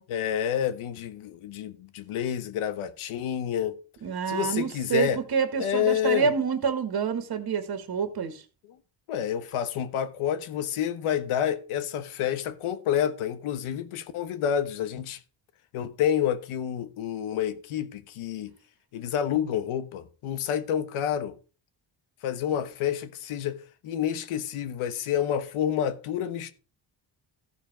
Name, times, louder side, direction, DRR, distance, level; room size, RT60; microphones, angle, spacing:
voice 1, 0.1-3.8 4.3-5.2 5.6-6.3 9.1-15.2 15.7-18.5 18.9-21.4 22.2-26.5, left 9 dB, 85° left, 1.3 m, -29 dB
voice 2, 4.0-8.4, right 6 dB, 50° right, 1.9 m, -27 dB
14.5 x 5.1 x 5.1 m
cardioid pair, 95°, 48 cm